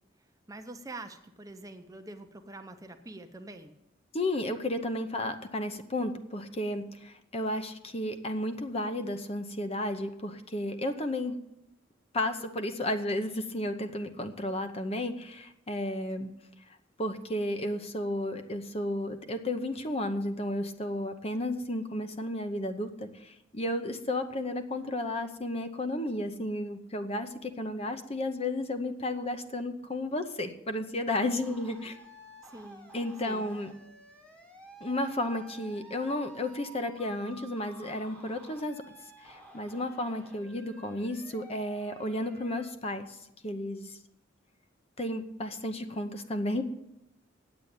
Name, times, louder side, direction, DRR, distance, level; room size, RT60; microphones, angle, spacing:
voice 1, 0.5-3.8 32.4-32.9 33.2-33.5, right 2 dB, 15° right, 7 dB, 0.7 m, -45 dB
voice 2, 4.1-11.3 12.1-16.3 17.0-32.0 32.9-33.7 34.8-38.8 39.2-43.2 43.4-44.0 45.0-46.6, left 1 dB, 30° left, 8 dB, 0.8 m, -33 dB
sound 1, 31.4-42.7, right 2 dB, 5° left, 1.2 m, -52 dB
8.8 x 8.1 x 8.9 m, 0.85 s
head